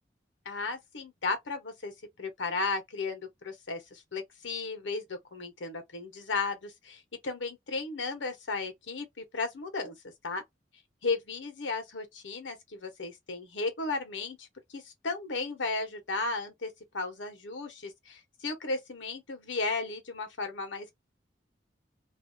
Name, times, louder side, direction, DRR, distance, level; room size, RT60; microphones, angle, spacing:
voice 1, 0.4-10.0 10.2-10.4 11.0-20.9, left 3 dB, 90° left, 1.0 m, -35 dB
2.6 x 2.3 x 2.7 m
head